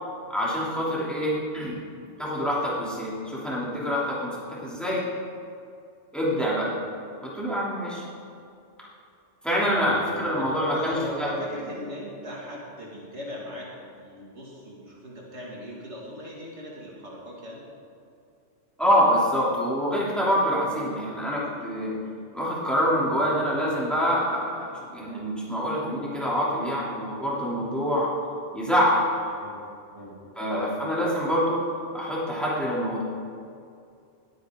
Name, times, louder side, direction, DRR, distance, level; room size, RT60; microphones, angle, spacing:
voice 1, 0.3-1.8 2.2-5.0 6.1-6.7 7.2-8.0 9.4-11.3 18.8-21.9 22.3-28.1 28.5-29.0 30.4-31.6 31.9-33.0, equal, ahead, -7 dB, 3.1 m, -26 dB
voice 2, 9.8-17.6 23.0-23.3 29.3-29.6 29.9-30.6, equal, 65° right, -4 dB, 2.6 m, -39 dB
20.0 x 9.2 x 3.9 m, 2.5 s
omnidirectional pair, 1.3 m